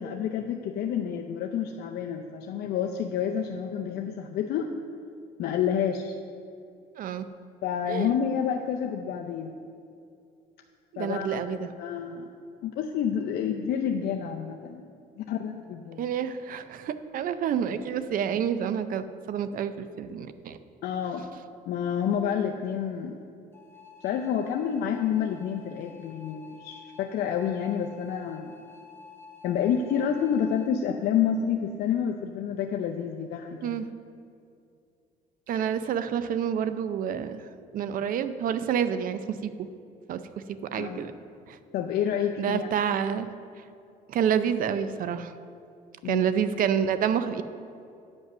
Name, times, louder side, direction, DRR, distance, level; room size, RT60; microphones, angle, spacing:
voice 1, 0.0-4.7 5.4-6.1 7.6-9.6 11.0-12.3 12.6-14.8 15.2-16.0 20.8-21.3 21.7-23.1 24.0-28.5 29.4-33.8 40.7-41.0 41.7-42.7 46.0-46.3, left 8 dB, 70° left, 3 dB, 0.5 m, -29 dB
voice 2, 7.9-8.2 10.9-11.7 16.0-20.6 33.6-33.9 35.5-37.4 37.7-39.5 40.1-40.2 40.7-41.1 41.5-41.6 42.4-43.3 44.1-45.3 46.0-47.4, right 8 dB, 55° right, 11 dB, 0.5 m, -28 dB
sound 1, 23.5-30.7, left 6 dB, 15° left, 0.8 m, -50 dB
9.2 x 5.4 x 6.0 m, 2.5 s
cardioid pair, 110°, 17 cm